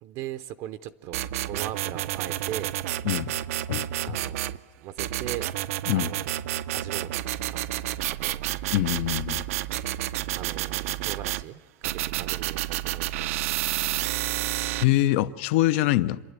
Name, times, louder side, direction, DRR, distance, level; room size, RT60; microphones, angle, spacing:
voice 1, 0.0-2.7 4.0-4.4 4.8-5.5 5.9-6.4 6.7-7.1 7.5-7.6 8.1-8.5 10.4-13.4, right 12 dB, 45° right, 0.6 m, -39 dB
sound 1, 1.1-4.6 5.0-11.4 11.8-14.8, right 14 dB, 90° right, 0.6 m, -30 dB
voice 2, 8.7-9.4 14.8-16.2, left 15 dB, 60° left, 0.6 m, -23 dB
27.5 x 12.0 x 9.5 m
supercardioid pair, 170°, 7 cm